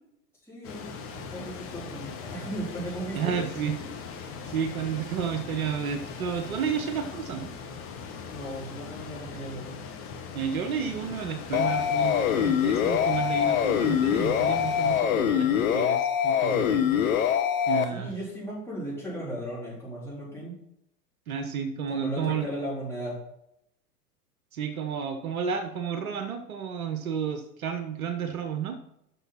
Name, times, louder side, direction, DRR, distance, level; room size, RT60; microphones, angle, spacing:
voice 1, 0.4-3.5 8.2-9.7 17.9-20.6 21.9-23.2, right 1 dB, 5° left, -7 dB, 3.8 m, -36 dB
sound 1, 0.6-15.0, left 5 dB, 25° left, 1.6 m, -40 dB
voice 2, 3.1-3.8 4.2-7.5 10.3-17.2 17.7-18.1 21.3-22.5 24.5-28.8, right 7 dB, 60° right, 8 dB, 1.0 m, -31 dB
sound 2, 11.5-17.8, left 9 dB, 55° left, 1.1 m, -24 dB
7.0 x 6.3 x 5.8 m, 0.80 s
figure-of-eight pair, 100°, 48 cm